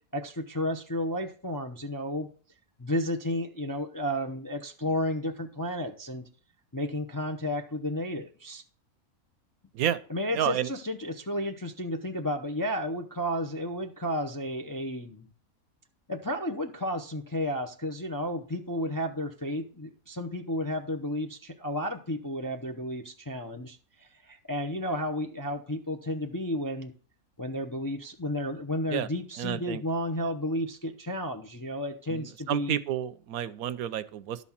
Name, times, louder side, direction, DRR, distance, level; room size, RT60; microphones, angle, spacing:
voice 1, 0.1-2.3 2.8-6.2 6.7-8.6 10.1-15.3 16.1-26.9 27.4-32.8, left 1 dB, 25° left, 3 dB, 0.5 m, -32 dB
voice 2, 10.3-10.7 28.9-29.1 29.4-29.8 32.1-34.4, right 11 dB, 75° right, 14 dB, 1.0 m, -30 dB
12.0 x 4.2 x 7.2 m, 0.41 s
omnidirectional pair, 1.6 m